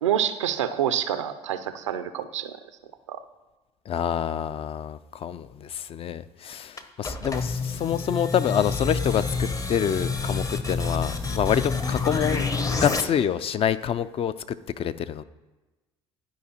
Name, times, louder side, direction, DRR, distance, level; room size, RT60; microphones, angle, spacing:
voice 1, 0.0-2.6 3.1-3.2, right 10 dB, 85° right, 11 dB, 0.4 m, -27 dB
voice 2, 3.9-12.5 12.8-15.2, left 9 dB, 40° left, 14 dB, 0.4 m, -27 dB
sound 1, 6.8-13.0, left 4 dB, 25° left, 0.8 m, -28 dB
11.5 x 4.9 x 2.8 m, 1.2 s
hypercardioid pair, 55°, 15 cm